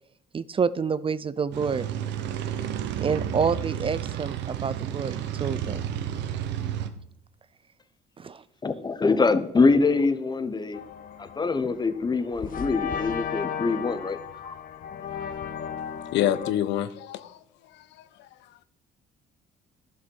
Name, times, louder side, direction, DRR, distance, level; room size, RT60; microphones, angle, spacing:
voice 1, 0.3-1.9 3.0-5.8 8.2-8.4, right 6 dB, 30° right, 17 dB, 0.5 m, -28 dB
sound 1, 1.5-6.9, right 10 dB, 75° right, 1.0 m, -31 dB
voice 2, 8.6-10.8 11.2-14.2 14.4-14.6 16.0-16.1, left 4 dB, 25° left, 12 dB, 1.0 m, -24 dB
sound 2, 10.7-16.5, left 8 dB, 50° left, 1.0 m, -35 dB
voice 3, 16.1-17.4 17.8-18.0, left 12 dB, 75° left, 14 dB, 0.7 m, -27 dB
11.0 x 7.0 x 5.5 m, 0.73 s
cardioid pair, 85°, 18 cm